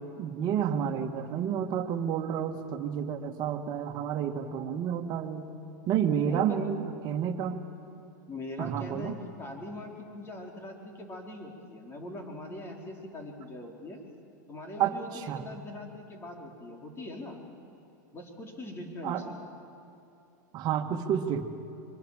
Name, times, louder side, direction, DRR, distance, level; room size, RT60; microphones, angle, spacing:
voice 1, 0.0-5.4 5.9-7.6 8.6-9.1 14.8-15.5 19.0-19.3 20.5-21.4, right 8 dB, 45° right, 4 dB, 2.0 m, -30 dB
voice 2, 6.3-6.7 8.3-14.0 14.5-17.4 18.1-19.3, left 1 dB, 25° left, 2 dB, 4.2 m, -41 dB
23.5 x 23.5 x 7.5 m, 2.8 s
hypercardioid pair, 115°, 10 cm